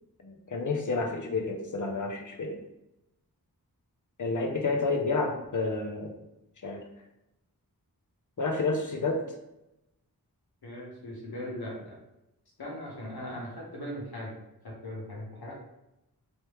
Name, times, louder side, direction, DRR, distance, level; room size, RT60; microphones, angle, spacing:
voice 1, 0.2-2.5 4.2-6.1 6.6-6.8 8.4-9.2, left 3 dB, 55° left, 3 dB, 0.7 m, -30 dB
voice 2, 10.6-12.0 12.6-14.3 14.6-15.5, left 1 dB, 80° left, -3 dB, 1.2 m, -39 dB
3.2 x 3.1 x 3.1 m, 0.91 s
wide cardioid pair, 50°, 37 cm